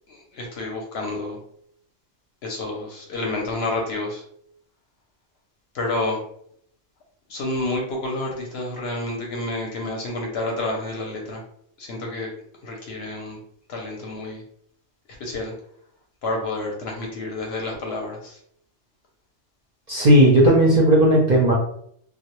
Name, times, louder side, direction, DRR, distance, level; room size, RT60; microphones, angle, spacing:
voice 1, 0.1-1.4 2.4-4.2 5.7-6.2 7.3-11.4 11.8-12.3 12.6-13.4 13.7-14.4 15.2-15.5 16.2-18.4, left 2 dB, 65° left, 0 dB, 0.7 m, -29 dB
voice 2, 19.9-21.5, right 1 dB, 50° right, -4 dB, 0.5 m, -15 dB
2.1 x 2.0 x 2.9 m, 0.67 s
omnidirectional pair, 1.3 m